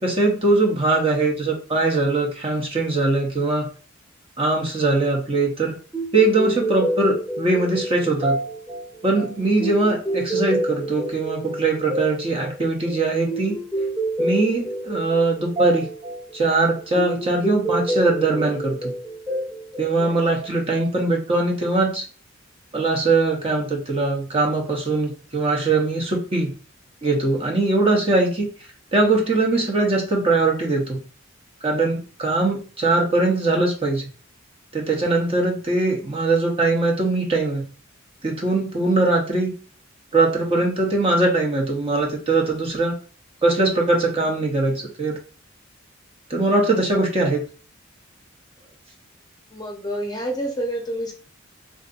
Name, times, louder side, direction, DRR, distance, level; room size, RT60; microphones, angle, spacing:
voice 1, 0.0-3.7 4.4-5.8 6.1-8.4 9.0-13.6 14.2-15.9 16.3-18.9 19.8-22.1 22.7-26.5 27.0-28.5 28.9-31.0 31.6-34.1 34.7-37.6 38.2-39.5 40.1-43.0 43.4-45.2 46.3-47.4, right 2 dB, 30° right, 0 dB, 0.8 m, -21 dB
sound 1, 5.9-20.7, right 1 dB, 10° right, 1.1 m, -28 dB
voice 2, 49.5-51.1, right 1 dB, 20° left, 1 dB, 0.7 m, -28 dB
3.6 x 2.6 x 2.5 m, 0.38 s
head